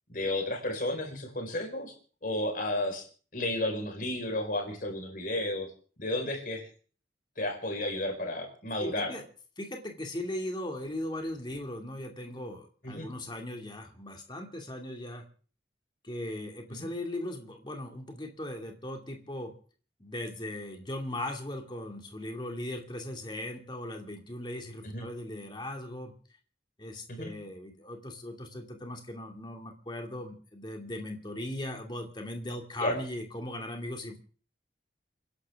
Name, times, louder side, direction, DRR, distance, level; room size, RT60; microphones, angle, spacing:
voice 1, 0.1-1.9 2.2-3.0 3.3-5.7 6.0-6.7 7.4-9.1 12.8-13.1 16.7-16.9 24.8-25.0 27.1-27.3 32.8-32.9, left 1 dB, 50° left, 2 dB, 5.0 m, -32 dB
voice 2, 8.8-9.2 9.6-15.2 16.0-19.5 20.0-26.1 26.8-34.2, left 1 dB, 25° left, 2 dB, 2.5 m, -38 dB
29.5 x 11.5 x 3.7 m, 0.42 s
head